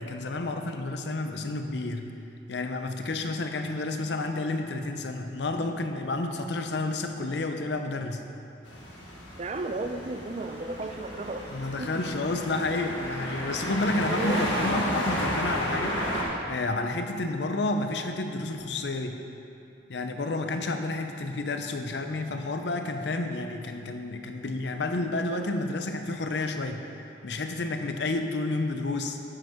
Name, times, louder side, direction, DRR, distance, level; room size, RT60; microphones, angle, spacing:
voice 1, 0.0-2.1 2.5-8.2 11.5-16.0 16.5-19.2 19.9-26.9 27.2-29.2, left 2 dB, 65° left, 6 dB, 0.7 m, -30 dB
sound 1, 8.7-16.2, equal, 85° left, 1.8 m, -32 dB
voice 2, 9.4-11.5 11.8-11.9 14.1-14.5, right 2 dB, 40° right, 7 dB, 0.5 m, -33 dB
11.0 x 7.8 x 3.7 m, 2.6 s
head